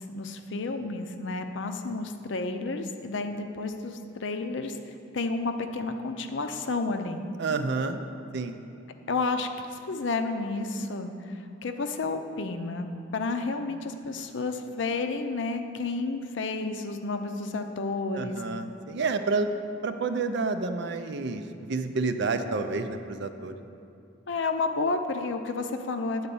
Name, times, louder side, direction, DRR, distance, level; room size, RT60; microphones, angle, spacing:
voice 1, 0.0-4.8 5.1-7.2 9.1-18.4 24.3-26.3, left 3 dB, 65° left, 7 dB, 0.5 m, -31 dB
voice 2, 7.4-8.0 8.3-8.6 18.1-19.5 19.8-21.4 21.7-23.5, right 4 dB, 60° right, 8 dB, 0.5 m, -29 dB
9.4 x 4.1 x 6.9 m, 2.6 s
head